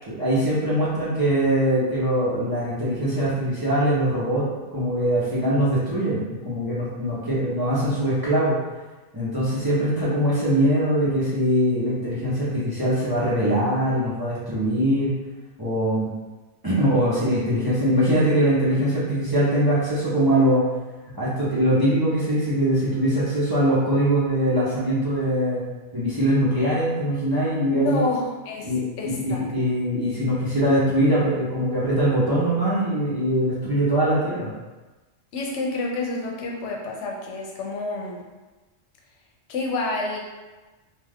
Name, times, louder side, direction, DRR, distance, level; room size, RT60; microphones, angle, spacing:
voice 1, 0.1-8.6 9.1-15.1 15.6-16.0 16.6-20.6 21.1-25.6 25.9-28.0 28.6-34.5, equal, 25° right, -10 dB, 0.5 m, -22 dB
voice 2, 27.7-28.7 29.0-29.4 35.3-38.2 39.5-40.2, left 2 dB, 85° left, 0 dB, 0.9 m, -28 dB
2.4 x 2.3 x 3.3 m, 1.2 s
omnidirectional pair, 1.2 m